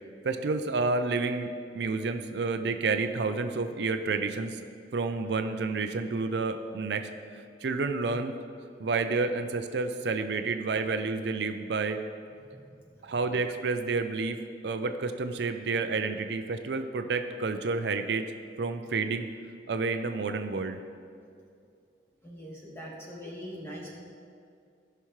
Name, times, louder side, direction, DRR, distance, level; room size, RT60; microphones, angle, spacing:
voice 1, 0.2-4.6 4.9-8.3 8.8-12.0 13.0-14.4 14.6-18.2 18.6-19.3 19.7-20.8, right 4 dB, 70° right, 7 dB, 0.5 m, -30 dB
voice 2, 12.4-13.1 22.2-24.0, equal, 15° left, -4 dB, 1.5 m, -43 dB
16.5 x 5.7 x 3.2 m, 2.4 s
head